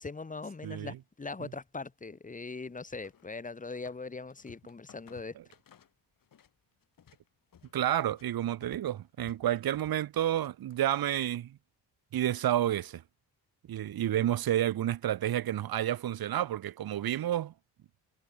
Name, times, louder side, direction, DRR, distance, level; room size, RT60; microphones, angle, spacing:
voice 1, 0.0-5.4, left 3 dB, 20° left, 1.6 m, -41 dB
voice 2, 0.6-1.0 1.4-1.5 7.7-11.6 12.1-13.0 13.7-17.5, right 12 dB, 60° right, 1.2 m, -30 dB
sound 1, 3.0-4.0 4.3-6.5 6.8-11.2, left 8 dB, 55° left, 5.5 m, -58 dB
cardioid pair, 130°, 40 cm